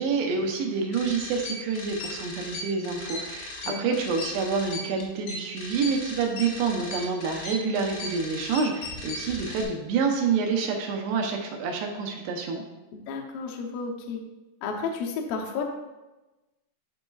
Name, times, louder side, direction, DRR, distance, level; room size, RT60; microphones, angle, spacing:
voice 1, 0.0-12.6, right 5 dB, 80° right, 1 dB, 2.7 m, -28 dB
sound 1, 0.9-9.6, left 2 dB, 70° left, 2.4 m, -37 dB
voice 2, 12.9-14.2 14.6-15.6, left 5 dB, 85° left, 1 dB, 1.9 m, -32 dB
10.5 x 4.1 x 2.3 m, 1.1 s
omnidirectional pair, 5.0 m